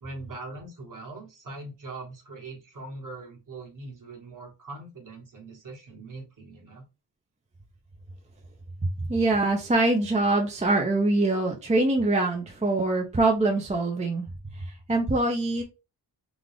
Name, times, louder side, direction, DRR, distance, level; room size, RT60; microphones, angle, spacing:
voice 1, 0.0-6.9, right 2 dB, 45° right, 0 dB, 1.3 m, -41 dB
voice 2, 9.0-14.3 14.5-15.6, right 2 dB, 15° right, 2 dB, 0.5 m, -24 dB
3.8 x 2.4 x 3.2 m, 0.28 s
wide cardioid pair, 150°, 43 cm